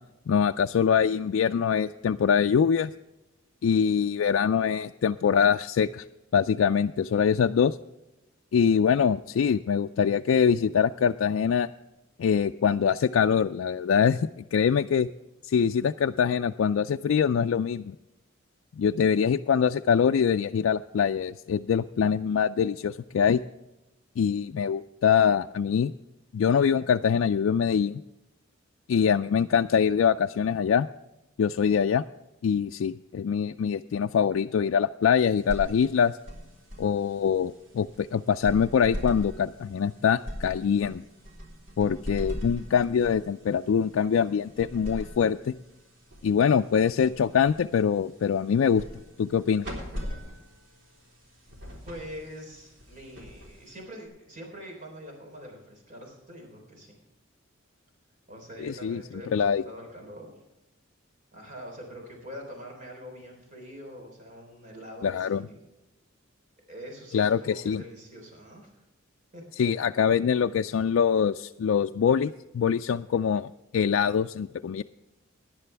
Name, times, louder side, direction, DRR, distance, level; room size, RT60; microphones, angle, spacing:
voice 1, 0.3-2.9 3.6-6.0 6.3-7.8 8.5-11.7 12.2-15.1 15.4-18.0 18.8-23.4 24.2-25.9 26.3-28.0 28.9-30.9 31.4-32.0 32.4-36.2 36.8-41.0 41.8-45.5 46.2-48.8 49.2-49.7 58.6-59.0 59.3-59.6 65.0-65.5 67.1-67.8 69.6-74.8, left 7 dB, 75° left, 6 dB, 0.3 m, -24 dB
sound 1, 35.2-54.1, equal, 65° right, 3.6 m, -41 dB
voice 2, 51.9-57.0 58.3-60.3 61.3-65.6 66.7-68.7 69.3-69.4, equal, 40° right, 1 dB, 3.6 m, -44 dB
17.5 x 10.5 x 3.4 m, 0.97 s
head